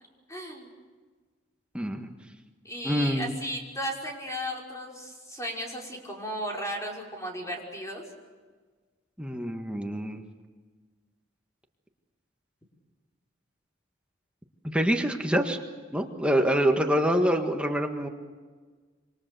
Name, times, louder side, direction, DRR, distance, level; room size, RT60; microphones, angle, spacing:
voice 1, 0.3-0.7 2.6-8.0, equal, 15° left, -1 dB, 5.4 m, -35 dB
voice 2, 1.7-2.1 2.8-3.3 9.2-10.2 14.6-15.6 15.9-18.1, equal, 5° right, 3 dB, 1.7 m, -26 dB
27.5 x 25.5 x 6.9 m, 1.4 s
head